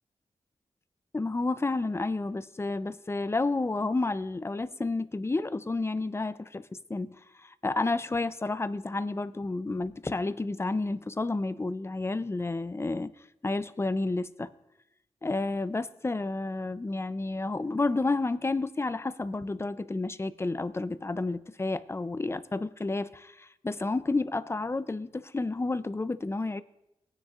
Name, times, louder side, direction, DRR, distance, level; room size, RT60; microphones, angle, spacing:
voice 1, 1.1-6.6 6.9-13.1 13.4-14.5 15.2-26.6, left 3 dB, 20° left, 14 dB, 0.5 m, -30 dB
19.0 x 9.8 x 2.5 m, 0.87 s
cardioid pair, 60°, 12 cm